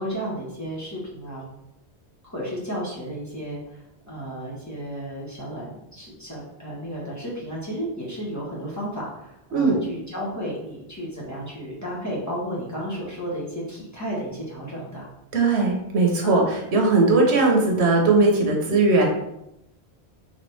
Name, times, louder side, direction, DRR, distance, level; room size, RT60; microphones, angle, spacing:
voice 1, 0.0-1.5 2.2-15.1 16.2-16.4, equal, 15° left, -6 dB, 1.4 m, -33 dB
voice 2, 9.5-9.8 15.3-16.4 16.7-19.0, right 3 dB, 80° right, 1 dB, 1.2 m, -19 dB
4.0 x 3.9 x 3.4 m, 0.83 s
omnidirectional pair, 1.1 m